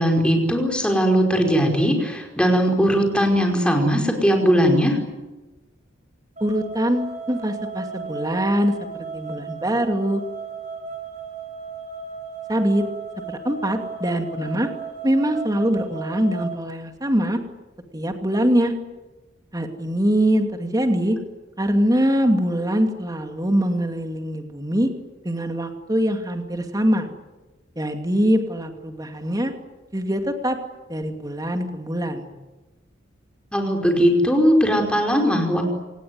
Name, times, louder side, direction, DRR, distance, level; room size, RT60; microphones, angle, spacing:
voice 1, 0.0-5.0 33.5-35.6, equal, 5° left, 3 dB, 5.0 m, -19 dB
voice 2, 6.4-10.2 12.5-12.8 13.3-14.7 15.0-17.4 17.9-18.7 19.5-21.2 21.6-24.9 25.2-27.1 27.8-29.5 29.9-30.6 30.9-32.3, equal, 20° right, 5 dB, 2.5 m, -23 dB
sound 1, 6.4-16.6, right 4 dB, 40° right, 6.9 m, -35 dB
26.5 x 19.0 x 9.7 m, 1.1 s
head